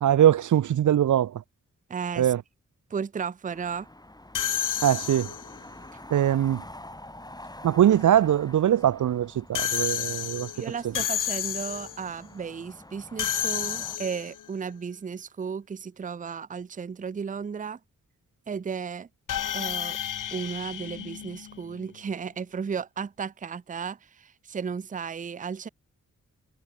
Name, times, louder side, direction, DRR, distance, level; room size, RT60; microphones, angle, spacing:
voice 1, 0.0-1.3 2.2-2.4 4.8-5.3 6.1-6.6 7.6-10.5, right 11 dB, 75° right, 0.5 m, -21 dB
voice 2, 1.9-2.3 2.9-3.9 10.6-17.8 18.5-19.1 19.5-20.0 20.3-25.7, right 6 dB, 25° right, 0.5 m, -34 dB
sound 1, 3.5-14.0, left 1 dB, 15° left, 5.9 m, -47 dB
sound 2, 4.3-5.6 9.5-12.1 13.2-14.5 19.3-21.8, left 10 dB, 90° left, 0.8 m, -31 dB
wide cardioid pair, 100°, 31 cm